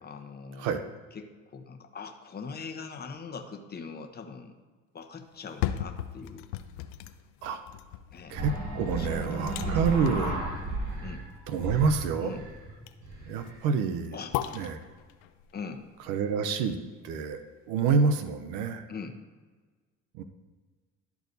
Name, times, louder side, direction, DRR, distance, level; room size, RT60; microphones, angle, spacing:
voice 1, 0.0-0.7 1.1-4.6 4.9-6.5 8.1-8.4 8.9-10.3 11.0-11.2 12.2-12.4 14.1-14.3 15.5-15.8 18.9-19.1, left 5 dB, 30° left, 5 dB, 0.9 m, -42 dB
sound 1, 5.3-17.4 17.8-17.9, left 12 dB, 90° left, 0.5 m, -39 dB
sound 2, 8.3-11.2 11.5-13.6, right 2 dB, 60° right, 2.1 m, -33 dB
voice 2, 8.3-10.3 11.5-12.4 13.3-14.2 14.5-14.8 16.1-16.8 17.0-18.8 20.1-20.2, right 5 dB, 85° right, 10 dB, 0.7 m, -27 dB
12.0 x 4.7 x 2.7 m, 1.4 s
supercardioid pair, 75°, 33 cm